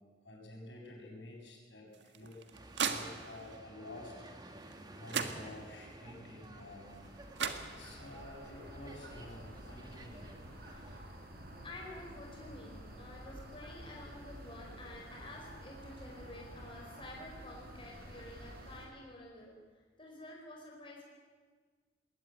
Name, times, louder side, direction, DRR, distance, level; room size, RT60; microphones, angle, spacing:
voice 1, 0.2-2.4 2.8-4.1 4.9-7.0 7.6-10.3, left 1 dB, 80° left, -1 dB, 7.6 m, -50 dB
sound 1, 1.9-3.6 4.7-4.8 5.1-5.9 7.0-7.1 7.4-8.2, right 6 dB, 75° right, 1.7 m, -38 dB
sound 2, 2.5-11.0, right 1 dB, 25° right, 2.2 m, -53 dB
sound 3, 5.9-18.9, right 1 dB, 60° right, 5.1 m, -51 dB
voice 2, 10.7-11.0 11.6-19.5 20.0-21.0, left 1 dB, 30° left, -2 dB, 4.8 m, -50 dB
21.5 x 19.0 x 9.0 m, 1.5 s
head